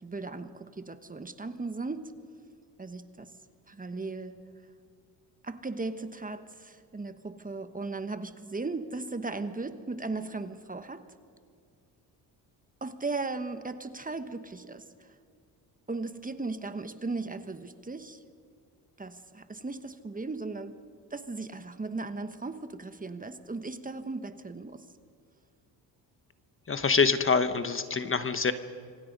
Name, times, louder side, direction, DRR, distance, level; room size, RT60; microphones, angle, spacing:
voice 1, 0.0-2.1 2.8-3.3 3.7-4.4 5.4-11.1 12.8-15.1 15.9-18.2 19.0-20.8 21.1-24.9, right 3 dB, 20° right, 10 dB, 1.2 m, -37 dB
voice 2, 26.7-28.5, left 5 dB, 30° left, 11 dB, 1.2 m, -25 dB
26.0 x 24.5 x 5.4 m, 2.1 s
supercardioid pair, 75°, 41 cm